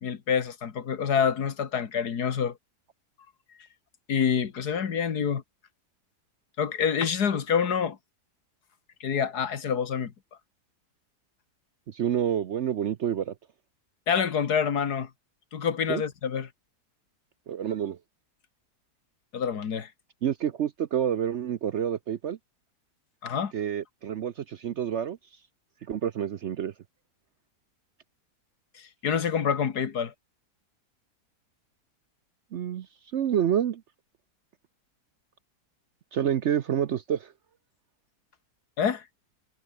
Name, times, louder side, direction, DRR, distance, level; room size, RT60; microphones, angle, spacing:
voice 1, 0.0-2.5 4.1-5.4 6.6-8.0 9.0-10.1 14.1-15.1 15.5-16.5 19.3-19.9 23.2-23.5 29.0-30.1 38.8-39.0, left 7 dB, 75° left, 2.1 m, -27 dB
voice 2, 11.9-13.3 15.9-16.0 17.5-18.0 20.2-22.4 23.5-25.2 25.9-26.7 32.5-32.9 33.1-33.8 36.1-37.3, right 9 dB, 60° right, 0.8 m, -28 dB
omnidirectional pair, 1.7 m